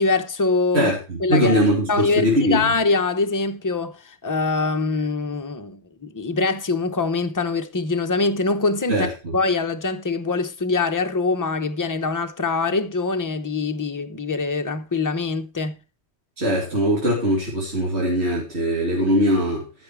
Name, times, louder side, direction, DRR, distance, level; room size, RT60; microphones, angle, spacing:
voice 1, 0.0-0.9 1.2-1.6 1.9-9.1 9.3-15.8, left 3 dB, 20° left, 0.8 m, -23 dB
voice 2, 0.7-2.7 8.9-9.3 16.4-19.6, equal, 65° right, 3.3 m, -21 dB
14.0 x 6.2 x 4.6 m
omnidirectional pair, 1.2 m